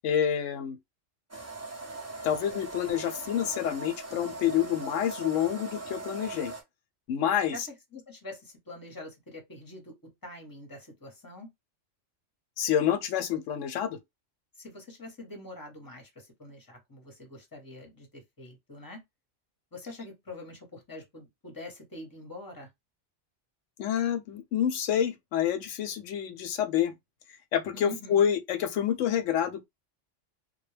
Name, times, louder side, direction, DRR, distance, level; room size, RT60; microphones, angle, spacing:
voice 1, 0.0-0.8 2.2-6.5 7.1-7.6 12.6-14.0 23.8-26.9 27.3-29.7, left 9 dB, 80° left, 0.9 m, -28 dB
sound 1, 1.3-6.6, right 2 dB, 20° right, 0.4 m, -40 dB
voice 2, 7.9-9.9 10.2-11.5 14.5-19.0 19.7-22.7 27.7-28.3, left 2 dB, 20° left, 0.9 m, -45 dB
2.2 x 2.2 x 3.1 m
omnidirectional pair, 1.3 m